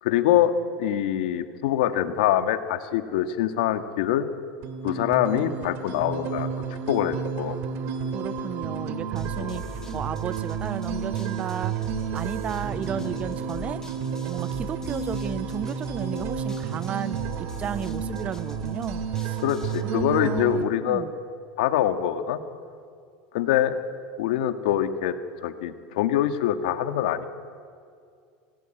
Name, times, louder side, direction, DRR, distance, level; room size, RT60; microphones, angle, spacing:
voice 1, 0.0-4.3 4.8-6.5 6.9-7.6 9.4-9.6 19.4-21.1 21.6-22.4 23.3-23.8 24.2-25.2 25.4-27.3, left 11 dB, 75° left, 8 dB, 1.8 m, -24 dB
daydream pad, 4.6-20.6, right 7 dB, 55° right, 2.2 m, -31 dB
voice 2, 8.1-11.7 12.1-13.8 14.3-19.4 19.8-21.1, right 8 dB, 30° right, 15 dB, 0.7 m, -34 dB
sound 1, 9.2-19.8, left 5 dB, 15° left, 1.9 m, -42 dB
27.0 x 18.0 x 9.1 m, 2.3 s
supercardioid pair, 140°, 4 cm